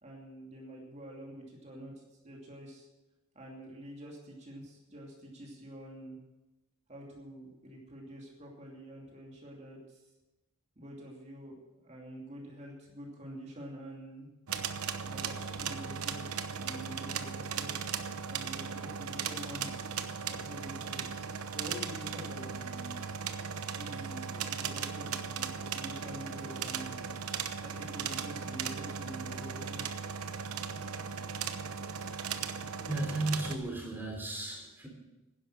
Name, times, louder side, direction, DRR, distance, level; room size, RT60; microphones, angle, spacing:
voice 1, 0.0-2.9 3.3-6.2 6.9-10.0 10.8-14.3 15.0-17.7 18.3-21.1 21.5-23.0 23.5-27.1 27.6-29.8, right 1 dB, 30° right, -1 dB, 2.6 m, -47 dB
sound 1, 14.5-33.6, right 6 dB, 90° right, 1.0 m, -37 dB
voice 2, 32.9-34.9, right 2 dB, 10° right, 0 dB, 3.5 m, -34 dB
11.0 x 11.0 x 7.5 m, 1.0 s
head